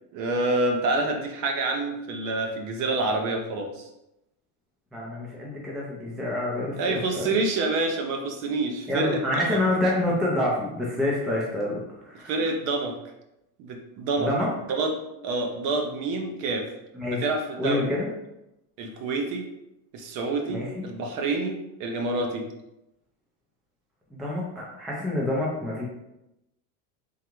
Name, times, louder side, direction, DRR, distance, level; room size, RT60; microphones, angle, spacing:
voice 1, 0.1-3.9 6.7-9.6 12.3-13.0 13.6-14.3 14.7-14.9 15.2-16.7 17.1-17.9 18.8-19.5 19.9-22.4, right 2 dB, 45° right, 4 dB, 0.7 m, -27 dB
voice 2, 4.9-7.3 8.9-12.3 14.2-14.5 16.9-17.2 17.6-18.1 20.5-20.9 24.1-25.8, left 1 dB, ahead, -4 dB, 0.4 m, -27 dB
3.8 x 3.3 x 3.0 m, 0.88 s
supercardioid pair, 140°, 45 cm